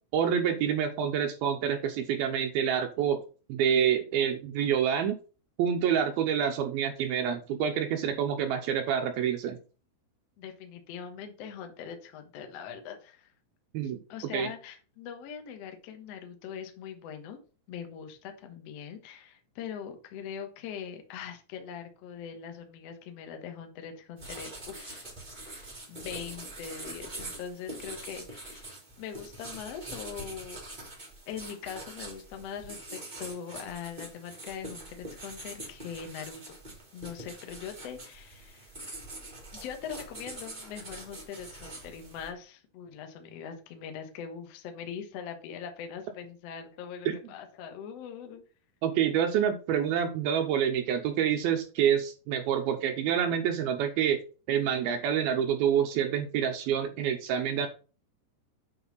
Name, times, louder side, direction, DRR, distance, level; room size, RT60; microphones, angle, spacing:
voice 1, 0.1-3.2 3.5-5.2 5.6-9.6 13.7-14.0 14.3-14.5 47.1-47.2 48.8-54.2 54.5-57.7, right 8 dB, 80° right, 5 dB, 2.3 m, -27 dB
voice 2, 10.4-13.3 14.1-17.4 17.7-30.6 31.3-36.5 36.9-38.7 39.5-48.4, left 7 dB, 75° left, 5 dB, 1.4 m, -42 dB
sound 1, 24.2-42.3, right 2 dB, 15° right, 1.5 m, -44 dB
8.9 x 4.4 x 5.5 m, 0.36 s
omnidirectional pair, 5.0 m